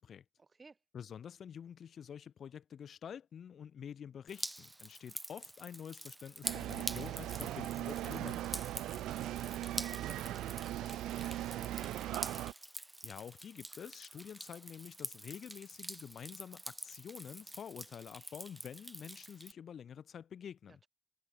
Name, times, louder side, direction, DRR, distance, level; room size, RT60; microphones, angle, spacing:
voice 1, 0.4-0.8 8.8-12.4 20.7-20.9, right 4 dB, 30° right, 2.7 m, -58 dB
voice 2, 0.9-8.5 13.0-20.8, left 8 dB, 55° left, 1.1 m, -48 dB
Drip, 4.3-19.5, right 1 dB, 10° right, 0.8 m, -46 dB
sound 1, 6.4-12.5, right 14 dB, 85° right, 1.0 m, -39 dB
cardioid pair, 90°, 0 cm